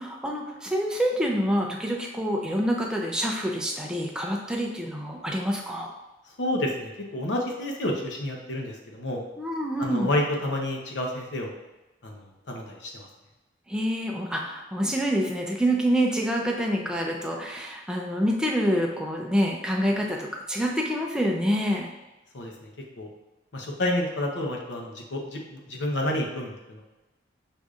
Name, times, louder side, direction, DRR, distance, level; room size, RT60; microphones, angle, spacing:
voice 1, 0.0-5.9 9.4-10.1 13.7-21.9, equal, 5° right, -1 dB, 0.4 m, -27 dB
voice 2, 6.4-9.2 9.8-11.5 12.0-13.1 22.3-22.7 23.0-23.1 23.5-26.8, left 1 dB, 75° left, 0 dB, 0.7 m, -30 dB
6.3 x 2.6 x 2.4 m, 1.0 s
head